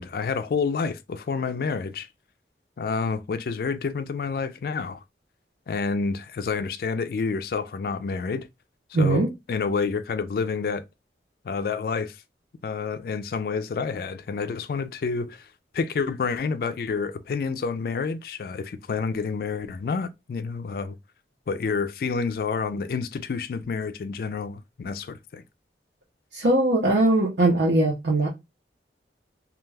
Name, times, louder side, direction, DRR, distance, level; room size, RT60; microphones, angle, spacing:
voice 1, 0.0-2.1 2.8-5.0 5.7-8.5 8.9-10.8 11.4-12.2 12.6-15.5 15.7-21.0 21.5-25.4, left 5 dB, 55° left, 0.3 m, -29 dB
voice 2, 8.9-9.3 26.3-28.3, right 2 dB, 75° right, 0.7 m, -20 dB
2.3 x 2.2 x 3.2 m
head